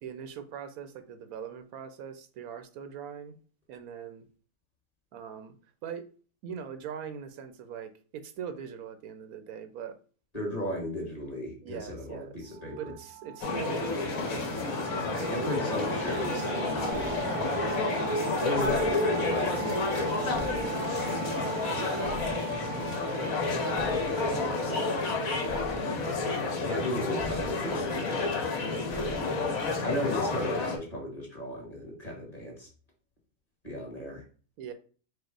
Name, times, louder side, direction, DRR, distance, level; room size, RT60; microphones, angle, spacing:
voice 1, 0.0-3.3 3.7-4.3 5.1-5.5 5.8-6.1 6.4-10.0 11.6-14.5 18.7-19.0 21.7-22.1 24.1-24.9 25.8-26.3 26.7-27.2 34.0-34.1 34.6-34.7, right 7 dB, 90° right, 1.1 m, -41 dB
voice 2, 10.3-12.9 14.9-17.7 18.4-20.7 21.6-22.2 22.6-23.0 26.6-28.4 28.8-29.3 29.8-32.7 33.6-34.2, left 1 dB, 25° left, 1.7 m, -36 dB
sound 1, 12.5-26.0, right 10 dB, 60° right, 0.6 m, -40 dB
sound 2, 13.4-30.8, left 3 dB, 75° left, 1.4 m, -30 dB
sound 3, 16.9-30.5, left 1 dB, 50° left, 1.5 m, -43 dB
4.8 x 2.1 x 4.5 m
omnidirectional pair, 1.5 m